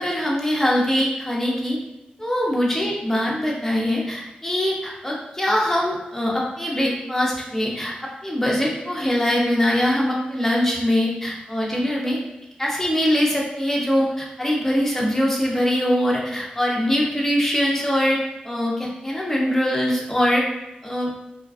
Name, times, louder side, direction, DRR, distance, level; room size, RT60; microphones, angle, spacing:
voice 1, 0.0-1.8 2.2-12.2 12.6-20.5 20.8-21.1, equal, 10° left, -3 dB, 0.6 m, -22 dB
2.3 x 2.3 x 2.3 m, 0.92 s
wide cardioid pair, 75°, 3 cm